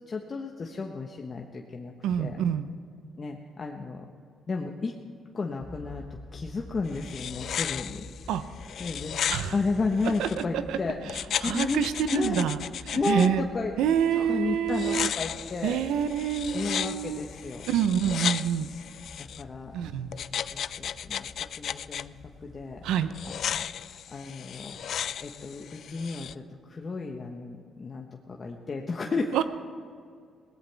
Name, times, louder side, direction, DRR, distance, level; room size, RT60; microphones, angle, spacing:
voice 1, 0.1-2.4 3.2-4.1 4.5-5.0 5.3-6.0 6.3-8.0 8.8-9.1 9.5-12.5 12.9-13.7 14.1-15.8 16.5-17.7 19.2-19.9 20.5-21.3 21.6-22.1 22.4-22.8 23.3-23.4 23.8-24.8 25.2-29.4, left 3 dB, 35° left, 1 dB, 1.2 m, -33 dB
voice 2, 2.0-2.7 8.3-8.4 9.3-9.6 10.0-10.3 10.5-10.8 11.4-12.6 12.9-13.5 13.8-15.1 15.6-17.2 17.7-18.7 19.7-20.1 22.8-23.1 29.3-29.4, right 9 dB, 90° right, 11 dB, 0.8 m, -27 dB
sound 1, 5.6-23.7, left 2 dB, 20° left, 1.4 m, -49 dB
sound 2, 6.9-10.4 11.1-13.3 14.7-19.4 20.1-22.0 23.1-26.3, left 9 dB, 65° left, 0.4 m, -35 dB
21.5 x 18.0 x 3.5 m, 2.2 s
cardioid pair, 90°, 0 cm